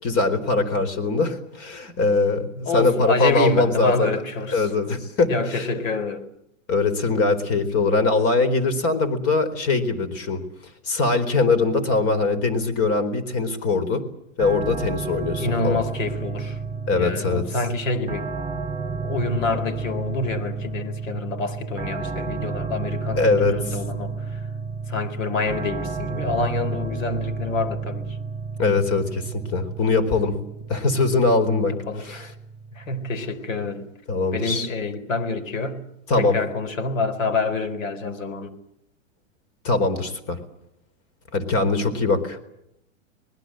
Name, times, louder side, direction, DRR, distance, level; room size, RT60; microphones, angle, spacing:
voice 1, 0.0-4.1 4.5-5.7 6.7-10.4 10.8-14.0 14.4-15.8 16.9-17.4 23.2-23.6 28.6-30.3 30.7-32.3 34.1-34.7 36.1-36.4 39.6-40.4 41.3-42.4, left 3 dB, 40° left, 13 dB, 4.2 m, -22 dB
voice 2, 2.7-4.7 5.3-6.2 15.4-16.6 16.9-18.3 18.5-18.7 19.0-24.4 24.9-28.1 31.7-32.3 32.7-33.8 34.3-35.8 36.1-38.5, left 3 dB, 85° left, 11 dB, 4.0 m, -27 dB
sound 1, 14.4-33.3, right 4 dB, 10° right, 3.9 m, -31 dB
26.5 x 20.0 x 7.8 m, 0.78 s
hypercardioid pair, 125°, 38 cm